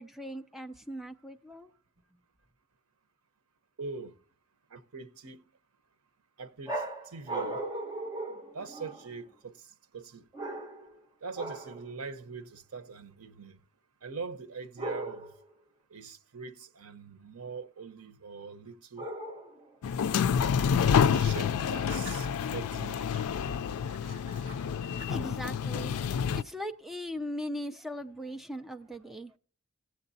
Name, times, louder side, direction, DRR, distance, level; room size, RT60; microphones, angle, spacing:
voice 1, 0.0-1.7 25.1-29.4, equal, ahead, 0.4 m, -39 dB
voice 2, 3.8-4.1 4.7-5.4 6.4-6.8 7.1-7.6 8.5-9.5 9.9-10.2 11.2-13.6 14.0-15.3 15.9-19.1 21.0-23.1, right 4 dB, 85° right, 0.8 m, -42 dB
sound 1, 6.7-9.2 10.3-11.0 11.4-11.8 14.8-15.4 19.0-19.7, right 2 dB, 20° right, 1.2 m, -37 dB
sound 2, 19.8-26.4, left 7 dB, 80° left, 0.4 m, -28 dB
sound 3, 20.3-22.6 22.8-25.3, right 3 dB, 60° right, 2.2 m, -52 dB
16.5 x 7.8 x 2.7 m
head